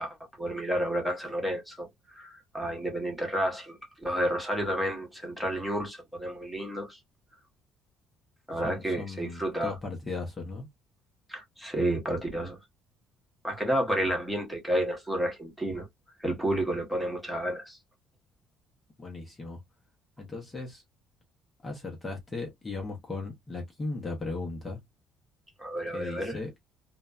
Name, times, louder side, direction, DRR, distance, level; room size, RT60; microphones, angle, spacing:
voice 1, 0.0-7.0 8.5-9.7 11.3-12.6 13.4-15.9 16.2-17.8 25.6-26.4, right 1 dB, 5° right, 0.9 m, -31 dB
voice 2, 8.5-10.7 19.0-19.6 20.2-20.8 21.6-24.8 25.9-26.5, left 3 dB, 20° left, 0.7 m, -37 dB
2.5 x 2.1 x 2.3 m
cardioid pair, 140°, 0 cm